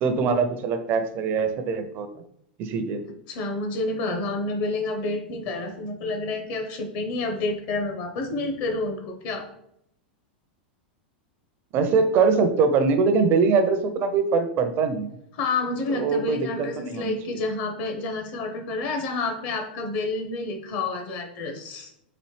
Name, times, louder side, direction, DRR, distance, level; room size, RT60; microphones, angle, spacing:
voice 1, 0.0-2.1 2.6-3.0 11.7-15.1 15.9-17.4, right 5 dB, 40° right, 8 dB, 0.5 m, -23 dB
voice 2, 3.3-9.5 15.3-21.9, left 3 dB, 55° left, 4 dB, 0.9 m, -29 dB
4.1 x 2.6 x 3.2 m, 0.75 s
hypercardioid pair, 105°, 5 cm